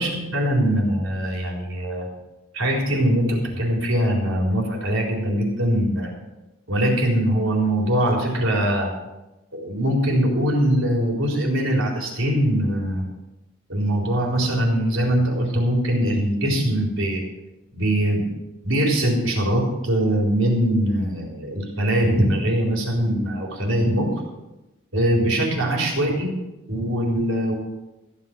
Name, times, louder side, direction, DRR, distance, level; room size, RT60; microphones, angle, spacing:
voice 1, 0.0-2.1 2.5-6.1 6.7-8.9 9.5-13.0 13.7-17.2 17.7-18.3 18.6-24.1 24.9-26.3 26.7-27.5, right 1 dB, 80° right, -1 dB, 4.1 m, -22 dB
15.0 x 8.2 x 6.1 m, 0.99 s
head